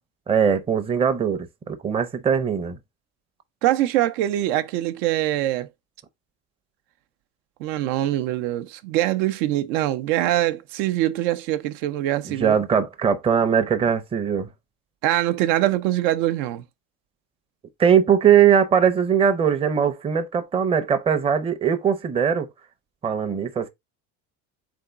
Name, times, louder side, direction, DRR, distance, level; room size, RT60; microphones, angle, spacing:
voice 1, 0.3-2.8 12.2-14.5 17.8-22.5 23.0-23.7, right 7 dB, 15° right, 0.5 m, -20 dB
voice 2, 3.6-5.7 7.6-12.6 15.0-16.6, right 14 dB, 85° right, 0.6 m, -23 dB
3.8 x 3.5 x 3.8 m
cardioid pair, 135°, 37 cm